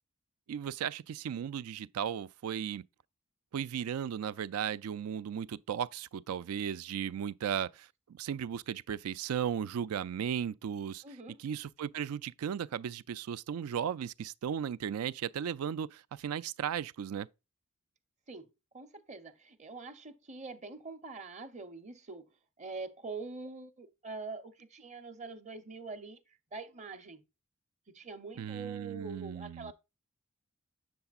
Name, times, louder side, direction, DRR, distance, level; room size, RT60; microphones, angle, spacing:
voice 1, 0.5-2.8 3.5-11.0 11.4-17.3 28.4-29.7, right 8 dB, 85° right, 0.3 m, -36 dB
voice 2, 11.0-11.4 18.3-18.5 18.7-22.3 22.6-26.2 26.5-27.2 27.9-29.7, right 3 dB, 30° right, 0.7 m, -44 dB
7.9 x 6.9 x 2.4 m
head